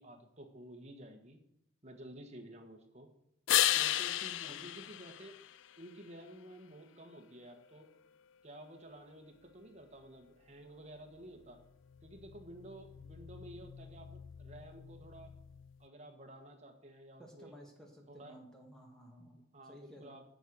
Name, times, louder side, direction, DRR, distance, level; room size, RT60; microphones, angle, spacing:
voice 1, 0.0-1.4 1.8-3.1 3.7-5.3 5.8-7.9 8.4-11.6 12.0-15.3 15.8-17.5 18.1-18.4 19.5-20.2, right 1 dB, 35° right, 4 dB, 1.5 m, -52 dB
sound 1, 3.5-6.0 11.8-15.8, left 13 dB, 75° left, 0.4 m, -36 dB
voice 2, 17.2-20.1, equal, 5° left, 0 dB, 2.1 m, -56 dB
8.5 x 7.9 x 6.2 m, 0.79 s
head